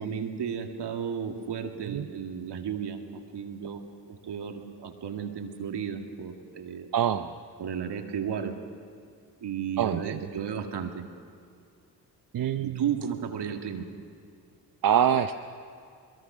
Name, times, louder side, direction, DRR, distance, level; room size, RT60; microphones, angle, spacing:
voice 1, 0.0-6.9 7.6-8.5 9.4-11.0 12.6-13.9, right 7 dB, 65° right, 4 dB, 2.3 m, -34 dB
voice 2, 6.9-7.4 9.8-10.3 12.3-12.8 14.8-15.3, right 9 dB, 50° right, 8 dB, 0.8 m, -25 dB
22.5 x 21.5 x 6.2 m, 2.4 s
supercardioid pair, 55°, 43 cm